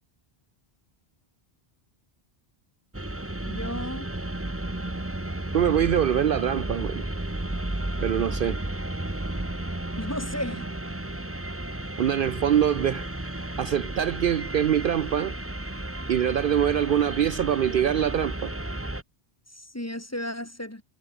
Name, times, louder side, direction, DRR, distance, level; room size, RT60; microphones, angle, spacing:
sound 1, 2.9-19.0, right 1 dB, 10° right, 1.4 m, -33 dB
voice 1, 3.5-4.1 10.0-10.7 19.6-20.8, left 1 dB, 15° left, 1.9 m, -34 dB
voice 2, 5.5-7.0 8.0-8.6 12.0-15.4 16.1-18.5, right 10 dB, 60° right, 0.7 m, -24 dB
omnidirectional pair, 1.1 m